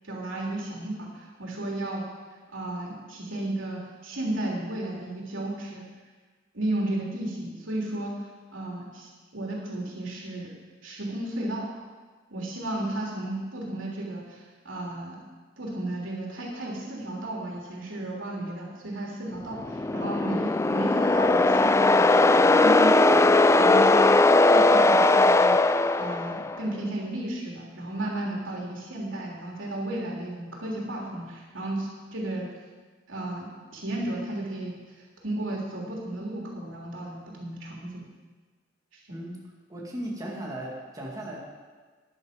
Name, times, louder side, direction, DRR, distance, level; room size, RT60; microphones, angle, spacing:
voice 1, 0.0-2.1 2.5-5.8 6.5-10.5 10.8-11.7 12.3-15.2 15.6-24.2 24.5-25.6 26.0-32.5 33.1-34.7 35.2-38.0 38.9-39.2, right 1 dB, 85° right, -3 dB, 3.2 m, -33 dB
sound 1, 19.6-26.6, left 2 dB, 15° left, 0.3 m, -19 dB
voice 2, 39.1-39.4 39.7-41.4, right 1 dB, 20° right, -4 dB, 2.2 m, -36 dB
12.5 x 10.5 x 5.2 m, 1.4 s
head